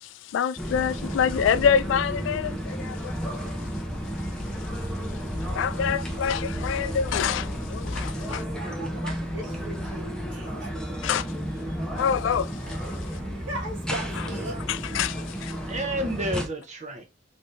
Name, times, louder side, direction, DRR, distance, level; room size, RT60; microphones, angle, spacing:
voice 1, 0.0-3.1 5.6-8.4 11.0-11.2 12.0-12.5 14.2-14.3 14.7-15.5, left 7 dB, 80° left, 0.3 m, -26 dB
sound 1, 0.6-16.5, equal, 5° left, 0.6 m, -32 dB
voice 2, 0.9-1.3 15.7-17.1, right 1 dB, 40° right, 0.9 m, -31 dB
voice 3, 8.3-11.0 11.7-11.8 12.6-15.8, right 1 dB, 85° right, 1.8 m, -40 dB
3.5 x 3.3 x 2.6 m
head